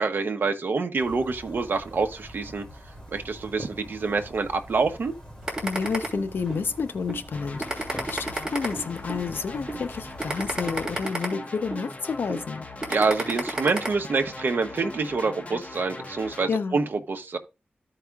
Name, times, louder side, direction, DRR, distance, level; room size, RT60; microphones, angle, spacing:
voice 1, 0.0-2.6 3.1-5.1 12.9-17.4, right 4 dB, 70° right, 0.9 m, -26 dB
sound 1, 0.9-11.0, equal, 15° left, 2.5 m, -44 dB
sound 2, 5.5-6.6 7.1-7.2 7.6-9.2 9.7-9.8 10.2-11.8 12.3-12.4 12.8-13.9, right 2 dB, 20° right, 2.8 m, -30 dB
voice 2, 5.6-12.7 16.5-16.8, left 5 dB, 85° left, 0.7 m, -30 dB
sound 3, 7.3-16.5, left 2 dB, 40° left, 1.1 m, -40 dB
14.5 x 4.9 x 2.3 m
wide cardioid pair, 90°, 4 cm